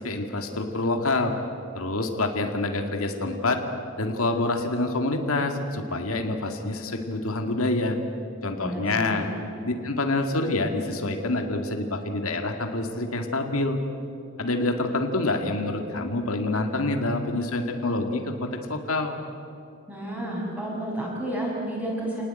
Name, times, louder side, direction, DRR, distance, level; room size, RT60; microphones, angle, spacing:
voice 1, 0.0-1.3 1.7-3.6 4.0-8.0 8.4-9.3 9.7-13.8 14.4-19.2, left 2 dB, 85° left, 4 dB, 2.1 m, -27 dB
voice 2, 8.6-9.3 19.9-22.2, right 1 dB, 5° right, -3 dB, 6.5 m, -31 dB
28.0 x 19.0 x 9.0 m, 2.6 s
head